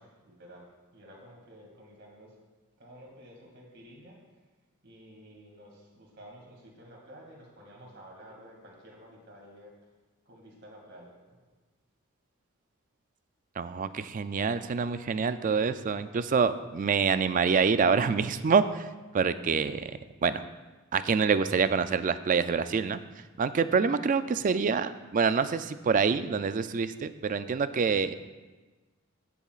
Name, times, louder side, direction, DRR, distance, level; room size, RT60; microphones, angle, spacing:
voice 1, 0.0-2.4 2.8-4.4 4.8-9.7 10.3-11.5, equal, 50° right, -1 dB, 2.4 m, -51 dB
voice 2, 13.6-18.9 19.1-20.4 20.9-23.0 23.4-28.1, right 5 dB, 35° right, 12 dB, 0.3 m, -26 dB
15.5 x 6.9 x 2.4 m, 1.3 s
head